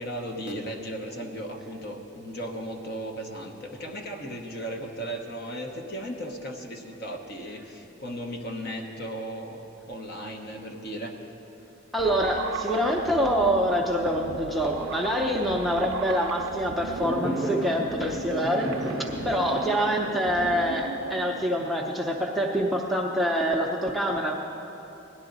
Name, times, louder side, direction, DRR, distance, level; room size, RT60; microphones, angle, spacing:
voice 1, 0.0-11.3, equal, 50° left, 2 dB, 1.1 m, -36 dB
voice 2, 11.9-24.3, equal, ahead, 0 dB, 0.6 m, -26 dB
sound 1, 12.0-21.5, right 5 dB, 75° right, 0.4 m, -37 dB
Fireworks, 16.9-22.1, equal, 70° left, 3.4 m, -34 dB
17.0 x 11.5 x 4.0 m, 2.9 s
head